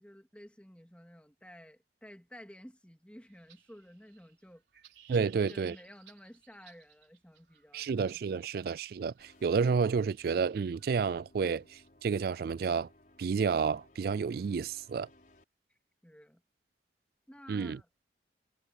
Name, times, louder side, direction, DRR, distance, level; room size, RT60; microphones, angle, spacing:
voice 1, 0.0-4.6 5.1-8.4 15.7-16.4 17.3-17.9, equal, 5° left, 2.1 m, -53 dB
sound 1, 3.2-11.9, right 10 dB, 80° right, 3.9 m, -62 dB
voice 2, 5.1-5.7 7.7-12.9 13.2-15.1 17.5-17.8, right 5 dB, 55° right, 0.3 m, -30 dB
sound 2, 9.2-15.4, left 1 dB, 50° left, 5.7 m, -62 dB
head